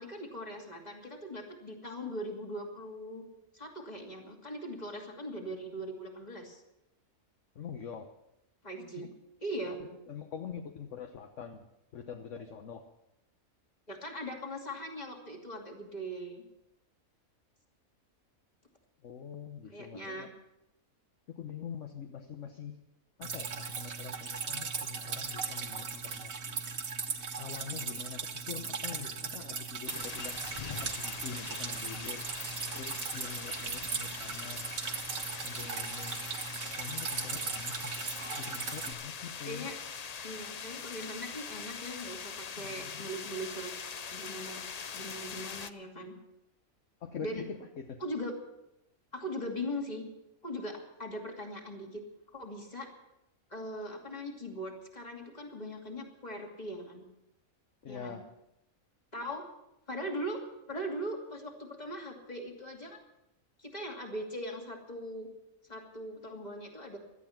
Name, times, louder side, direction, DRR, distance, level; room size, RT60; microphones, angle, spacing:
voice 1, 0.0-3.2 3.5-6.6 8.6-9.1 9.4-9.8 13.9-16.4 19.7-20.3 39.4-39.8 40.2-43.7 44.1-44.6 44.9-46.1 47.2-47.4 48.0-48.3 49.1-50.0 50.4-52.0 52.3-52.9 53.5-57.0 57.9-58.2 59.1-59.5 59.9-63.0 63.6-65.3 65.7-67.0, equal, 30° left, 1 dB, 2.8 m, -40 dB
voice 2, 7.5-8.1 9.0-9.1 9.8-11.6 11.9-12.9 19.0-20.3 21.3-22.8 23.2-26.6 27.4-30.4 30.7-32.3 32.7-34.7 35.4-36.2 36.8-37.9 38.4-39.7 42.6-43.0 47.0-48.0 57.8-58.2, left 7 dB, 60° left, 5 dB, 1.3 m, -44 dB
Drip, 23.2-38.9, right 5 dB, 75° right, 1.7 m, -38 dB
sound 1, 29.9-45.7, left 6 dB, 45° left, 0.5 m, -42 dB
17.0 x 12.5 x 5.9 m, 0.87 s
omnidirectional pair, 1.5 m